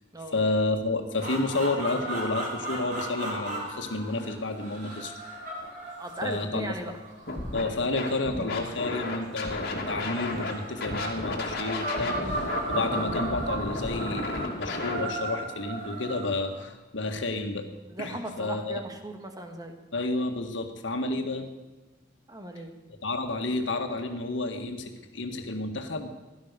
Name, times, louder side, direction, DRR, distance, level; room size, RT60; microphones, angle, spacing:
voice 1, 0.3-5.1 6.2-6.9 7.5-12.4 12.7-17.7 18.0-18.8 19.9-21.5 23.0-26.1, left 2 dB, 85° left, 5 dB, 1.7 m, -30 dB
sound 1, 1.1-9.0 9.6-16.6, right 1 dB, 45° right, 5.1 m, -36 dB
voice 2, 6.0-6.9 17.9-19.8 22.3-22.7, right 1 dB, 20° right, 5 dB, 1.8 m, -37 dB
Scratching (performance technique), 7.3-7.6 8.0-10.5 10.8-15.0, left 2 dB, 55° left, 2.7 m, -33 dB
16.5 x 12.0 x 6.8 m, 1.2 s
head